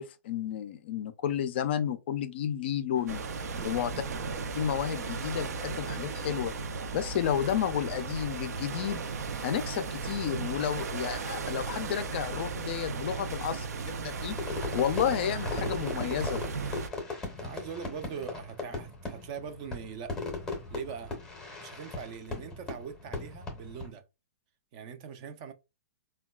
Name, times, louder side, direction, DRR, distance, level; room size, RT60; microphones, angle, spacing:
voice 1, 0.0-3.2 3.6-3.9 4.6-6.5 6.9-9.0 9.4-14.4 14.7-16.4, left 9 dB, 45° left, 0.3 m, -31 dB
sound 1, 2.9-8.4, right 4 dB, 60° right, 0.8 m, -48 dB
sound 2, 3.1-16.9, right 4 dB, 85° right, 0.5 m, -36 dB
Fireworks, 14.4-23.9, left 3 dB, 5° left, 0.6 m, -38 dB
voice 2, 17.4-20.2 20.7-21.2 21.6-24.0 24.7-25.5, right 7 dB, 30° right, 0.3 m, -41 dB
3.7 x 2.2 x 2.2 m
hypercardioid pair, 160°, 8 cm